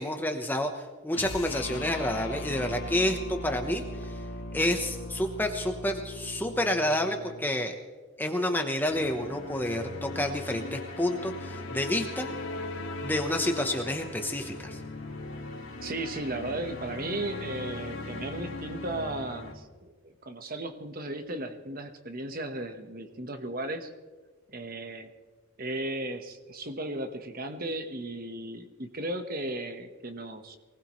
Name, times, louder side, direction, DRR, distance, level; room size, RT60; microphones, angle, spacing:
voice 1, 0.0-4.1 4.5-7.7 8.2-12.3 13.0-14.8, left 1 dB, 10° left, 4 dB, 1.0 m, -29 dB
sound 1, 1.1-7.5, left 2 dB, 90° left, 1.3 m, -39 dB
sound 2, 8.9-19.5, left 2 dB, 65° left, 2.1 m, -39 dB
voice 2, 15.8-23.9 24.5-25.1 25.6-30.6, right 1 dB, 40° right, 7 dB, 1.3 m, -35 dB
23.5 x 19.0 x 3.2 m, 1.3 s
head